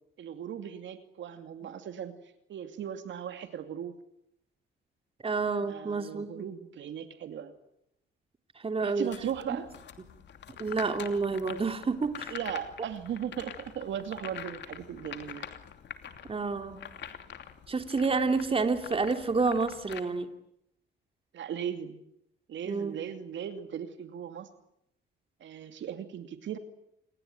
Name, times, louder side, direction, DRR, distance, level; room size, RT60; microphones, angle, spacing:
voice 1, 0.2-2.1 2.5-3.9 5.7-7.5 8.8-9.7 12.3-15.5 21.3-22.0 22.5-24.5 25.4-26.6, right 9 dB, 70° right, 8 dB, 2.6 m, -37 dB
voice 2, 5.2-6.4 8.6-9.1 9.5-9.6 10.6-12.3 16.3-16.8 17.7-20.3 22.7-23.0, right 4 dB, 30° right, 7 dB, 2.9 m, -29 dB
sound 1, 9.1-20.0, left 8 dB, 65° left, 2.8 m, -45 dB
28.5 x 21.5 x 9.4 m, 0.77 s
cardioid pair, 90°, 20 cm